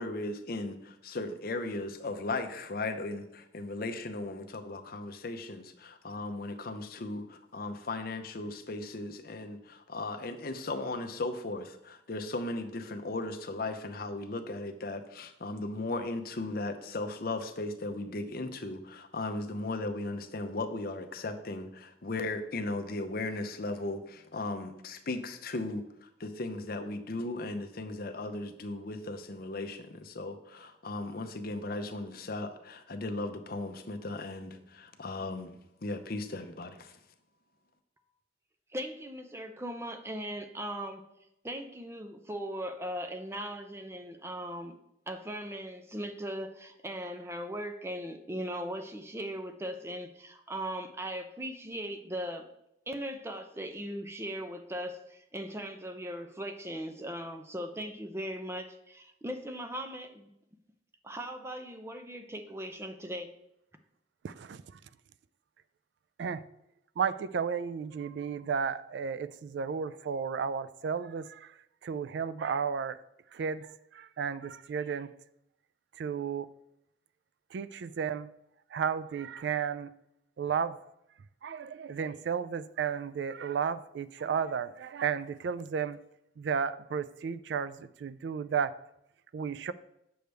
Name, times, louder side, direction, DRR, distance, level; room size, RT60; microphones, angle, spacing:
voice 1, 0.0-35.5 35.8-36.9, left 2 dB, 55° left, 7 dB, 0.7 m, -37 dB
voice 2, 38.7-41.0 41.4-44.7 45.1-52.5 52.9-60.3 61.0-63.3, equal, 15° right, 7 dB, 0.6 m, -39 dB
voice 3, 64.2-64.8 66.2-66.4 67.0-71.5 71.8-73.0 73.3-75.1 76.0-76.5 77.5-78.3 78.7-79.9 80.4-80.8 81.4-86.0 86.4-88.8 89.3-89.7, right 6 dB, 70° right, 16 dB, 0.3 m, -33 dB
7.8 x 6.7 x 3.4 m, 0.82 s
head